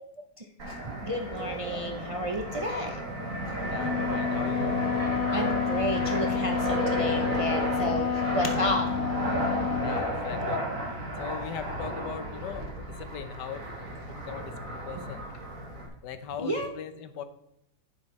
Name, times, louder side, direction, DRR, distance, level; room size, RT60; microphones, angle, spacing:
Fixed-wing aircraft airplane, 0.6-15.9, right 1 dB, 50° right, 2.6 m, -33 dB
voice 1, 1.1-3.0 5.3-8.9 14.9-15.0 16.4-16.7, equal, 35° right, 3 dB, 0.5 m, -31 dB
voice 2, 3.7-4.8 8.1-9.0 9.8-10.7 11.2-13.7 14.1-15.3 16.0-17.2, left 7 dB, 85° left, 10 dB, 1.5 m, -40 dB
Wind instrument woodwind instrument, 3.7-10.0, left 8 dB, 55° left, 0.8 m, -30 dB
10.5 x 10.0 x 3.2 m, 0.80 s
omnidirectional pair, 1.8 m